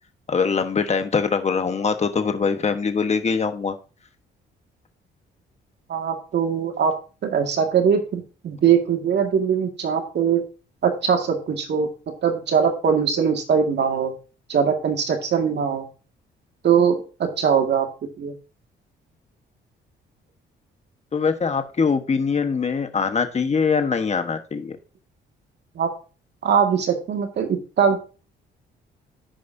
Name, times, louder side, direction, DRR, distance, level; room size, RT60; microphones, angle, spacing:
voice 1, 0.3-3.8 21.1-24.8, left 5 dB, 35° left, 7 dB, 1.2 m, -23 dB
voice 2, 5.9-6.9 7.2-10.4 10.8-11.9 12.2-14.1 14.5-15.8 16.6-17.9 18.2-18.3 25.8-25.9 26.4-28.0, right 7 dB, 60° right, 4 dB, 2.0 m, -21 dB
14.0 x 5.3 x 2.7 m, 0.35 s
cardioid pair, 90°, 20 cm